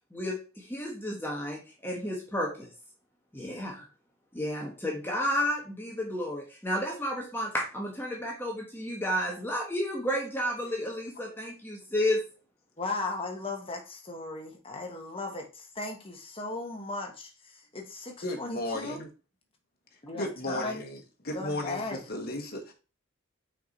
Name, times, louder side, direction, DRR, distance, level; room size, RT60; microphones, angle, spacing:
voice 1, 0.1-2.7 3.3-3.9 4.3-12.2, equal, 10° left, -1 dB, 1.2 m, -32 dB
voice 2, 12.8-19.0 20.0-20.9 21.3-22.0, left 3 dB, 25° left, 1 dB, 1.4 m, -37 dB
voice 3, 18.2-19.1 20.1-21.0 21.2-22.7, left 1 dB, 45° left, 3 dB, 1.4 m, -34 dB
5.8 x 4.7 x 4.2 m, 0.33 s
head